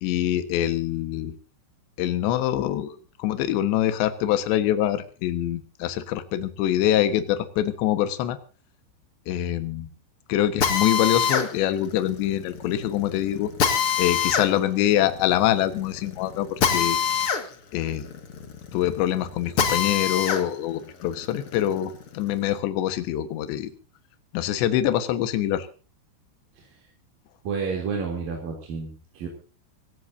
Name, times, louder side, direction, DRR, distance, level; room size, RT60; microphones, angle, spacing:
voice 1, 0.0-1.3 2.0-8.4 9.3-9.9 10.3-13.5 14.0-17.0 17.7-18.0 18.7-23.7 24.3-25.7, left 12 dB, 70° left, 10 dB, 3.5 m, -24 dB
Drill, 10.6-20.4 20.9-22.5, left 7 dB, 50° left, 1.7 m, -26 dB
voice 2, 27.4-29.3, right 5 dB, 50° right, 0 dB, 4.5 m, -30 dB
25.0 x 16.0 x 2.7 m, 0.36 s
omnidirectional pair, 5.5 m